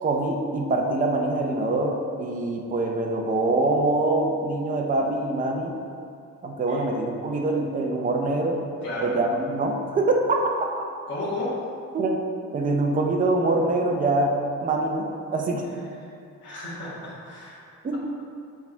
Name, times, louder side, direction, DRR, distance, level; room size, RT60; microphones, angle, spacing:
voice 1, 0.0-5.7 6.4-8.6 9.0-10.4 11.9-12.2 12.5-14.3 14.6-15.6 17.8-18.0, right 2 dB, 30° right, 1 dB, 0.6 m, -24 dB
voice 2, 8.8-9.1 11.1-11.6 16.4-17.7, left 2 dB, 40° left, -9 dB, 1.4 m, -33 dB
7.4 x 3.5 x 4.4 m, 2.4 s
cardioid pair, 170°, 29 cm